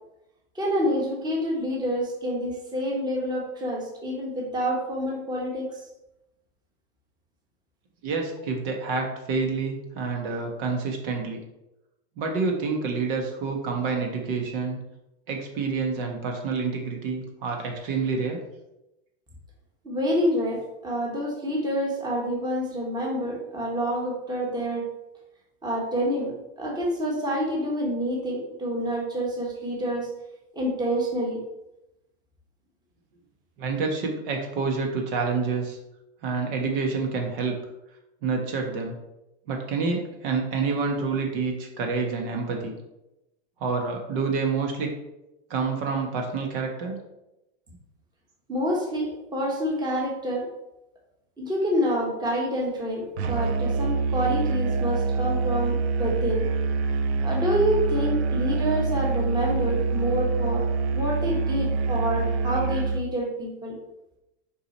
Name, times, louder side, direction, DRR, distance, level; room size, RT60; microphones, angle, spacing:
voice 1, 0.5-5.8 19.8-24.8 25.6-26.3 26.6-30.1 30.5-31.4 48.5-50.5 51.4-56.4 57.2-60.6 60.9-63.7, equal, 15° right, -2 dB, 1.4 m, -27 dB
voice 2, 8.0-11.4 12.2-14.8 15.3-18.4 33.6-35.8 36.2-37.6 38.2-38.9 39.5-42.8 43.6-44.9 45.5-47.0, right 4 dB, 55° right, 2 dB, 1.5 m, -28 dB
Musical instrument, 53.2-63.1, right 4 dB, 90° right, 0.8 m, -25 dB
6.6 x 4.8 x 4.2 m, 0.92 s
supercardioid pair, 155°, 32 cm